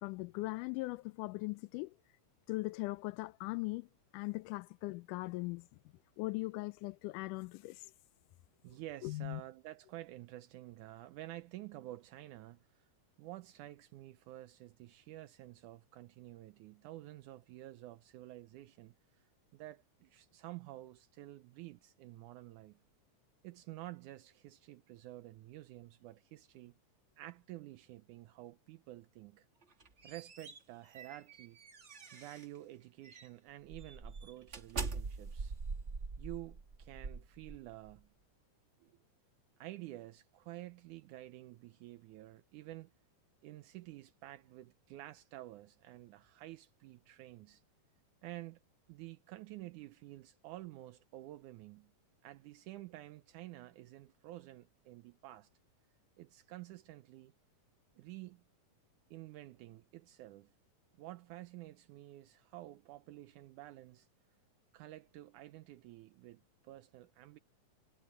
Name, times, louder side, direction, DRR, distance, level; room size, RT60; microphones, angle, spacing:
voice 1, 0.0-2.0 2.5-3.9 4.1-5.7 6.2-7.9 9.0-9.4, left 22 dB, 85° left, 2.0 m, -39 dB
voice 2, 8.6-12.9 13.2-22.8 23.4-26.8 27.2-29.5 30.0-31.6 32.1-35.6 36.2-38.1 38.8-39.0 39.6-42.9 43.4-47.6 48.2-48.6 48.9-51.9 52.2-55.5 56.2-57.3 58.0-58.4 59.1-60.5 61.0-64.1 64.7-67.4, right 16 dB, 80° right, 2.1 m, -50 dB
sound 1, 29.6-32.6 33.0-33.3 33.7-37.9, right 4 dB, 40° right, 0.9 m, -43 dB
omnidirectional pair, 3.7 m